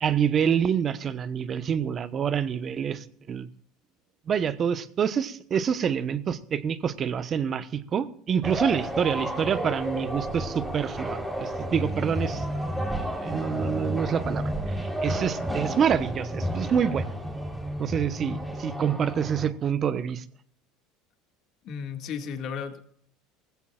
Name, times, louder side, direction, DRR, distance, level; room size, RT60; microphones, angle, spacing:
voice 1, 0.0-3.5 4.3-12.4 13.1-17.0 17.8-20.2, right 7 dB, 40° right, 1.0 m, -27 dB
sound 1, 8.4-19.5, equal, 5° right, 3.5 m, -31 dB
voice 2, 21.6-22.8, left 6 dB, 55° left, 2.0 m, -34 dB
19.5 x 15.5 x 2.4 m
supercardioid pair, 100°, 0 cm